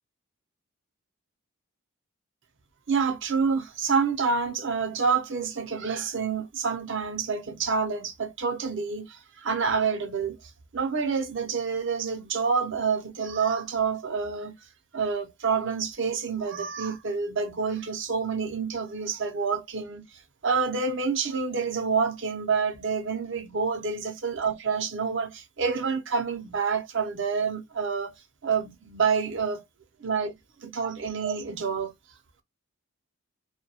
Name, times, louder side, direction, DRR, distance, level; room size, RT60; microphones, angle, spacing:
voice 1, 2.9-9.1 9.4-10.4 10.7-14.5 14.9-20.0 20.4-28.1 28.4-29.6 30.0-30.3 30.6-31.9, right 5 dB, 55° right, 0.6 m, -28 dB
2.3 x 2.2 x 2.7 m
head